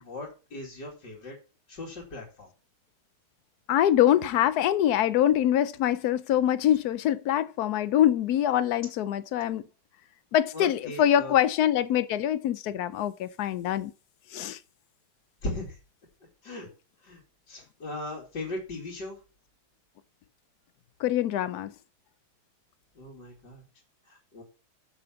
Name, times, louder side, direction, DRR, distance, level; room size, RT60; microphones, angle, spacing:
voice 1, 0.0-1.4 1.7-2.5 10.5-11.4 15.4-15.8 16.4-16.7 17.0-17.2 17.5-19.2 22.9-23.6 24.1-24.4, left 2 dB, 55° left, 3.1 m, -38 dB
voice 2, 3.7-9.6 10.3-13.9 14.3-14.6 21.0-21.7, left 11 dB, 90° left, 0.8 m, -24 dB
7.8 x 7.0 x 5.6 m
omnidirectional pair, 2.3 m